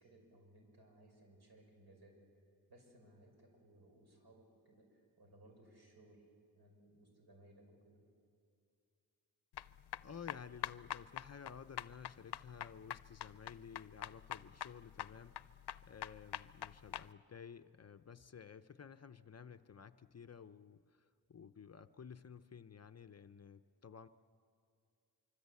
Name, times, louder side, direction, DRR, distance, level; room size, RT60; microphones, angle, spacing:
voice 1, 0.0-2.4 2.7-6.3 6.5-8.1, right 1 dB, 70° right, 2 dB, 5.9 m, -63 dB
sound 1, 9.5-17.1, left 11 dB, 80° left, 0.6 m, -45 dB
voice 2, 10.0-24.1, left 7 dB, 40° left, 11 dB, 0.6 m, -54 dB
25.5 x 24.5 x 8.3 m, 2.4 s
wide cardioid pair, 125°, 40 cm